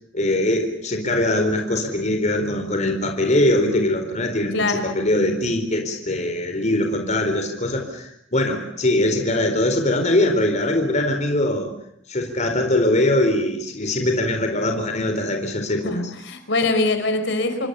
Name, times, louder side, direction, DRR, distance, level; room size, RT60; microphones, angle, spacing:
voice 1, 0.1-11.7 12.1-16.0, left 1 dB, 40° left, 4 dB, 4.3 m, -22 dB
voice 2, 15.8-17.7, left 2 dB, 65° left, 8 dB, 4.7 m, -23 dB
28.5 x 24.0 x 7.0 m, 0.71 s
head